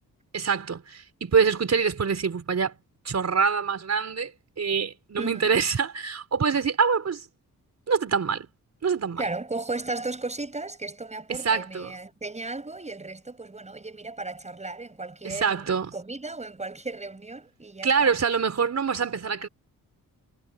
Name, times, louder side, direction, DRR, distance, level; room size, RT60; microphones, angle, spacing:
voice 1, 0.3-2.7 3.0-4.3 4.6-7.3 7.9-8.5 8.8-9.2 11.3-11.9 15.2-15.9 17.8-19.5, right 6 dB, 50° right, 4.9 m, -25 dB
voice 2, 5.2-5.5 9.2-18.1, right 3 dB, 20° right, 6.4 m, -35 dB
wide cardioid pair, 115°, 34 cm